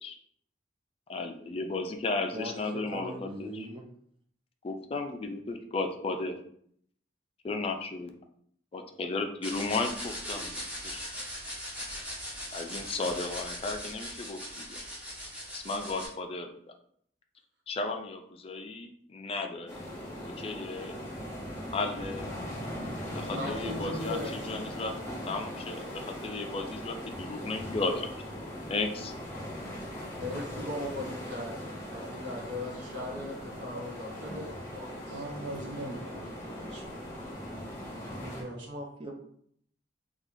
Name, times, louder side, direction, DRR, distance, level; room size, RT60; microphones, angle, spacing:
voice 1, 1.1-3.5 4.6-6.4 7.4-8.1 8.7-11.1 12.5-14.8 15.5-16.5 17.7-19.8 20.2-21.0 21.7-22.3 23.1-24.9 25.3-28.1 28.7-29.1, left 3 dB, 30° left, 5 dB, 0.4 m, -34 dB
voice 2, 2.3-3.9 38.7-39.1, right 1 dB, 30° right, 1 dB, 0.5 m, -40 dB
sound 1, 9.4-16.1, equal, 10° right, 0.9 m, -39 dB
sound 2, 19.7-38.4, equal, 15° left, 1.0 m, -40 dB
voice 3, 23.3-24.3 30.2-35.3, left 1 dB, 65° right, 0 dB, 0.9 m, -38 dB
voice 4, 35.1-36.8 38.2-38.7, right 1 dB, 85° right, -1 dB, 1.0 m, -41 dB
4.4 x 2.4 x 2.6 m, 0.65 s
head